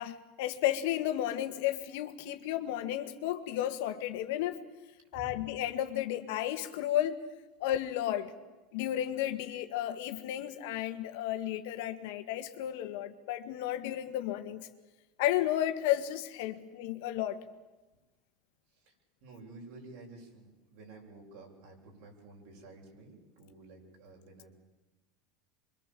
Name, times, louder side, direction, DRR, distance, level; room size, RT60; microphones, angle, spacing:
voice 1, 0.0-4.7 5.1-7.2 7.6-8.3 8.7-14.7 15.2-17.4, left 12 dB, 75° left, 8 dB, 1.8 m, -33 dB
voice 2, 5.1-5.4 18.7-18.9 19.2-24.5, right 2 dB, 70° right, 1 dB, 7.5 m, -51 dB
25.0 x 23.5 x 7.5 m, 1.1 s
supercardioid pair, 125°, 0 cm